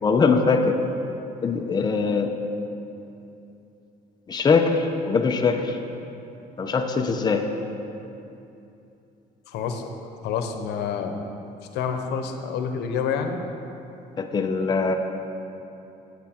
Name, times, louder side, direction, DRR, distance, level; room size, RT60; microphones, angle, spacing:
voice 1, 0.0-0.8 1.4-2.3 4.3-5.8 6.6-7.5 14.2-15.0, left 4 dB, 25° left, 4 dB, 0.7 m, -22 dB
voice 2, 9.5-9.9 10.2-11.2 11.7-13.4, left 6 dB, 85° left, 6 dB, 0.9 m, -28 dB
9.4 x 9.2 x 4.4 m, 2.8 s
cardioid pair, 110°, 17 cm